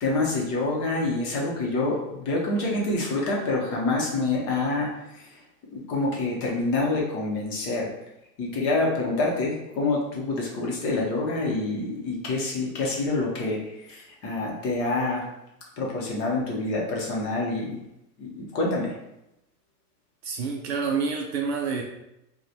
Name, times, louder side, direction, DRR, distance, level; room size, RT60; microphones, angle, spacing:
voice 1, 0.0-5.4 5.7-7.9 8.4-15.3 15.8-17.8 18.2-18.9, left 2 dB, 30° left, -3 dB, 0.9 m, -27 dB
voice 2, 20.2-21.8, right 5 dB, 45° right, 1 dB, 0.5 m, -28 dB
3.0 x 2.3 x 3.9 m, 0.86 s
supercardioid pair, 145°, 48 cm